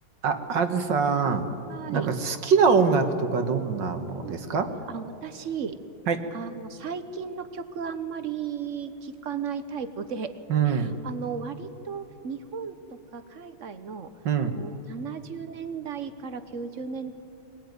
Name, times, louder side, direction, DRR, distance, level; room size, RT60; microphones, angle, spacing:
voice 1, 0.2-1.4 1.9-4.7 6.1-6.2 10.5-11.0 14.3-14.5, right 5 dB, 65° right, 7 dB, 2.0 m, -24 dB
voice 2, 1.7-2.1 4.2-4.4 4.9-5.8 6.3-10.4 10.6-14.1 14.4-17.1, right 6 dB, 45° right, 10 dB, 1.1 m, -35 dB
23.0 x 19.0 x 9.5 m, 2.7 s
omnidirectional pair, 2.2 m